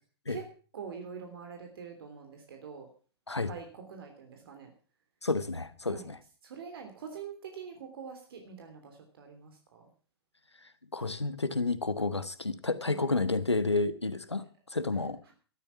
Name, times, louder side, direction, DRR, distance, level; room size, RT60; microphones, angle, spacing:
voice 1, 0.7-2.9 3.5-4.7 5.9-6.1 6.4-9.9 12.8-13.0, right 6 dB, 60° right, 4 dB, 3.2 m, -44 dB
voice 2, 5.2-6.2 10.6-15.2, left 3 dB, 90° left, 13 dB, 1.3 m, -31 dB
14.0 x 12.0 x 5.9 m, 0.40 s
figure-of-eight pair, 105°, 14 cm